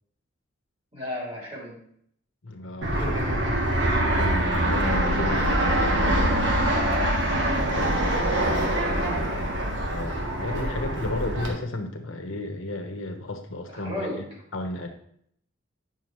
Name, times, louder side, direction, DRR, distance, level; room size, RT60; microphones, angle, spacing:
voice 1, 0.9-1.8 2.9-3.3 6.7-9.1 13.7-14.3, left 1 dB, 30° right, -4 dB, 2.9 m, -36 dB
voice 2, 2.4-3.4 3.7-6.3 9.9-14.3 14.5-14.9, left 2 dB, 85° left, 4 dB, 1.1 m, -33 dB
Fixed-wing aircraft airplane, 2.8-11.5, right 1 dB, 65° right, 1.5 m, -24 dB
9.1 x 6.2 x 3.1 m, 0.68 s
head